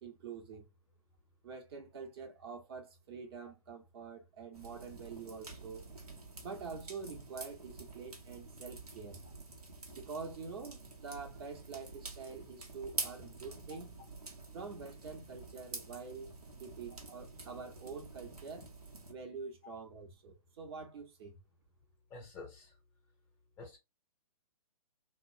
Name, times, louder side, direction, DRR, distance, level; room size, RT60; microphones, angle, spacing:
voice 1, 0.0-0.7 1.4-5.8 6.4-9.2 9.9-13.9 14.5-16.3 16.6-18.7 19.1-21.4, right 5 dB, 40° right, 0.9 m, -46 dB
sound 1, 4.5-19.1, right 3 dB, 85° right, 0.9 m, -47 dB
voice 2, 22.1-22.8 23.6-23.8, left 3 dB, 10° left, 0.5 m, -49 dB
2.9 x 2.0 x 2.5 m
figure-of-eight pair, 130°, 19 cm